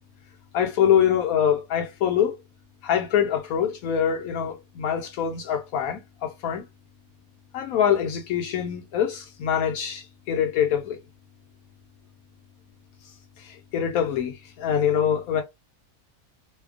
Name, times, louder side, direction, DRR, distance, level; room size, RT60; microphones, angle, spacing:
voice 1, 0.5-2.4 2.8-6.6 7.5-11.0 13.4-15.4, left 9 dB, 70° left, 1.0 m, -24 dB
2.8 x 2.1 x 2.5 m
omnidirectional pair, 1.7 m